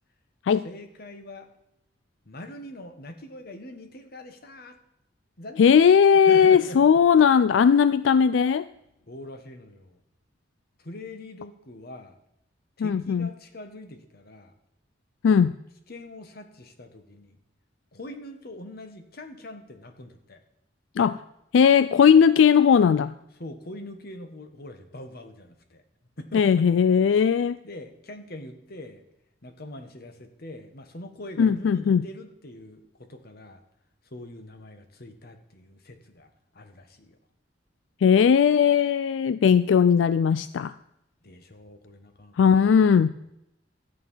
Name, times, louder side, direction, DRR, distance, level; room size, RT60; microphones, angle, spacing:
voice 1, 0.6-1.5 2.2-4.8 5.4-6.0 6.3-6.8 9.1-10.0 10.8-12.2 12.8-14.5 15.9-17.4 17.9-20.4 23.4-25.8 26.2-26.7 27.6-29.0 29.4-33.6 34.0-37.2 41.2-42.9, left 1 dB, 55° left, 7 dB, 1.4 m, -43 dB
voice 2, 5.6-8.7 12.8-13.3 15.2-15.5 21.0-21.2 21.5-23.1 26.3-27.6 31.4-32.0 38.0-40.7 42.4-43.1, left 7 dB, 85° left, 15 dB, 0.3 m, -18 dB
13.0 x 8.9 x 5.6 m, 0.82 s
head